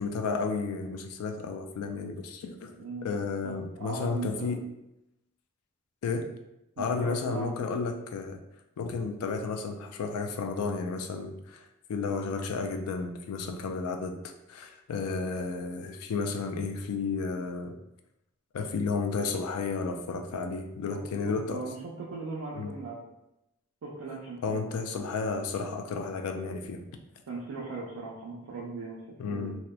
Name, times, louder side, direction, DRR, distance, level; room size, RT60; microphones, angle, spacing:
voice 1, 0.0-2.7 3.0-4.6 6.0-6.3 6.8-8.4 8.8-17.8 18.5-21.6 22.5-22.7 24.4-26.8 29.2-29.5, left 4 dB, 80° left, 5 dB, 0.3 m, -32 dB
voice 2, 3.4-4.5 6.8-7.5 20.9-21.0 21.3-23.0 23.8-24.8 27.3-29.5, right 3 dB, 80° right, -5 dB, 0.4 m, -38 dB
2.8 x 2.1 x 2.3 m, 0.89 s
head